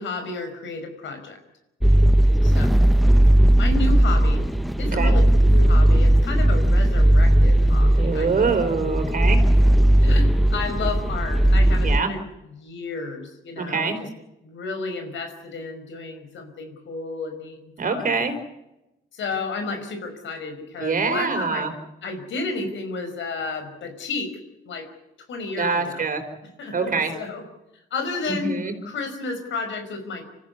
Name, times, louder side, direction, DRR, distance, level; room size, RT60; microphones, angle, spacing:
voice 1, 0.0-1.4 2.4-2.8 3.6-4.5 4.8-5.2 5.5-8.3 10.0-14.1 14.4-18.2 19.1-21.7 22.0-24.4 24.6-24.9 25.3-26.0 26.4-27.4 27.9-30.2, left 3 dB, 70° left, 7 dB, 5.3 m, -32 dB
sound 1, 1.8-12.0, right 1 dB, ahead, 0.9 m, -17 dB
voice 2, 8.0-9.4 11.8-12.1 13.6-14.0 17.8-18.4 20.8-21.7 25.6-26.2 26.7-27.1 28.3-28.7, right 4 dB, 45° right, 7 dB, 4.5 m, -24 dB
26.0 x 14.5 x 9.6 m, 0.94 s
cardioid pair, 90°, 20 cm